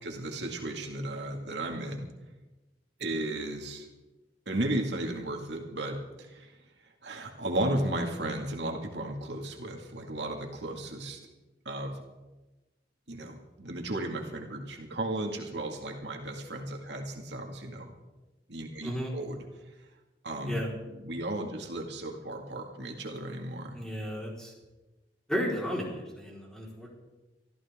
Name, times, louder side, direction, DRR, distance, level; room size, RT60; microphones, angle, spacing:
voice 1, 0.0-2.1 3.0-3.9 4.5-6.5 7.0-11.2 11.7-12.0 13.1-17.9 18.5-19.4 20.2-20.6 21.0-23.8, right 1 dB, 75° right, 2 dB, 2.2 m, -34 dB
voice 2, 23.7-24.5 25.3-26.9, equal, 5° left, -4 dB, 4.5 m, -33 dB
24.5 x 14.0 x 3.7 m, 1.1 s
head